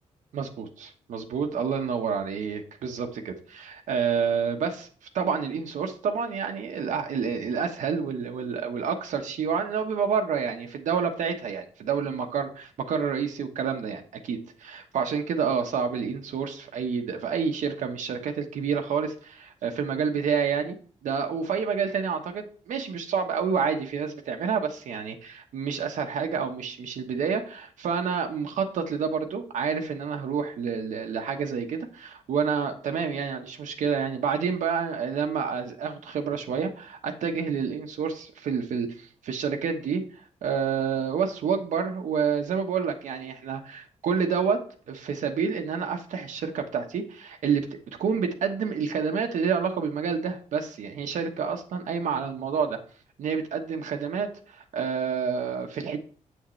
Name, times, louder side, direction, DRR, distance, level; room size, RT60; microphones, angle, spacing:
voice 1, 0.3-4.9 5.1-20.8 21.0-44.6 44.9-52.8 53.2-56.0, right 6 dB, 85° right, 3 dB, 1.2 m, -29 dB
8.6 x 6.5 x 3.2 m, 0.43 s
wide cardioid pair, 180°, 13 cm